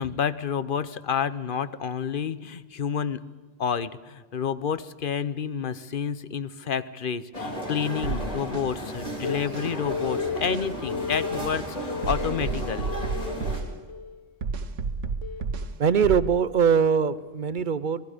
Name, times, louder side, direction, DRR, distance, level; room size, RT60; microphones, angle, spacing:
voice 1, 0.0-3.3 3.6-12.9, left 7 dB, 50° left, 14 dB, 0.9 m, -29 dB
sound 1, 7.3-13.6, equal, 30° left, 3.5 m, -34 dB
sound 2, 8.0-8.7 9.5-9.7 10.5-10.7 11.5-11.7 12.0-13.7 14.4-15.7 16.0-16.3, right 4 dB, 70° right, 1.4 m, -31 dB
Telephone, 9.2-9.4 9.9-10.4 10.9-11.4 11.9-12.4 12.9-13.4 13.9-14.2 15.2-15.4, left 6 dB, 75° left, 1.2 m, -32 dB
voice 2, 15.8-18.0, right 6 dB, 50° right, 15 dB, 0.8 m, -22 dB
26.5 x 20.5 x 5.1 m, 1.4 s
omnidirectional pair, 1.3 m